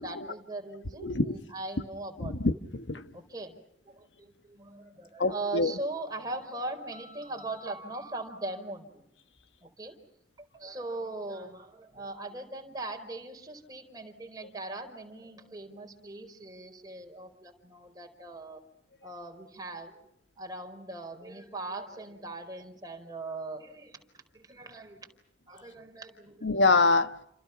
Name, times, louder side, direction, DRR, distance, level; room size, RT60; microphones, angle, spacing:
voice 1, 0.0-2.3 3.1-3.6 3.8-9.0 9.6-10.0 10.5-18.6 19.0-20.0 20.4-24.0 24.3-25.1 25.5-26.5, right 2 dB, 20° right, 4.5 m, -40 dB
voice 2, 1.0-1.4 2.2-3.0 5.2-5.7 26.4-27.1, left 3 dB, 85° left, 1.4 m, -25 dB
29.5 x 27.0 x 5.9 m
head